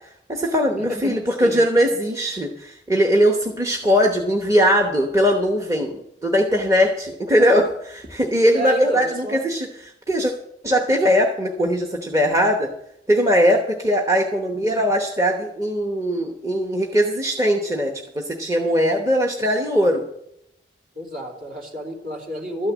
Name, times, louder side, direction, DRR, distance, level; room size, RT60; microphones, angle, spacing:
voice 1, 0.3-10.3 10.6-12.7 13.1-20.0, equal, 20° right, 2 dB, 0.9 m, -20 dB
voice 2, 0.9-1.6 3.3-3.5 8.5-9.4 20.9-22.7, equal, 50° right, 1 dB, 2.9 m, -30 dB
12.5 x 6.6 x 8.2 m, 0.77 s
head